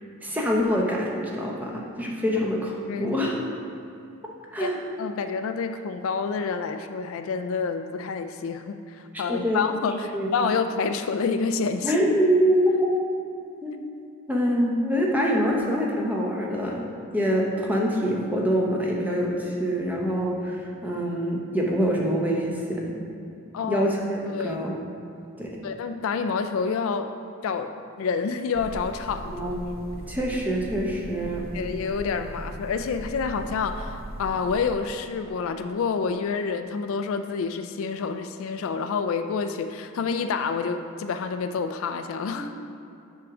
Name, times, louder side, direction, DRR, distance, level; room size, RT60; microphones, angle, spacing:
voice 1, 0.2-3.4 4.5-4.8 9.1-9.6 10.1-10.5 11.8-12.9 13.6-13.8 14.3-16.9 17.1-22.8 23.6-24.0 24.4-24.8 25.4-25.6 29.3-29.6 30.1-31.5 42.3-42.5, equal, 5° right, -2 dB, 0.7 m, -25 dB
voice 2, 5.0-11.9 23.5-23.9 24.3-24.6 25.6-27.1 27.4-27.7 28.0-29.4 31.5-42.6, left 5 dB, 65° left, 8 dB, 0.3 m, -28 dB
sound 1, 28.5-34.8, right 1 dB, 45° right, 0.5 m, -39 dB
7.6 x 3.7 x 5.9 m, 2.6 s
head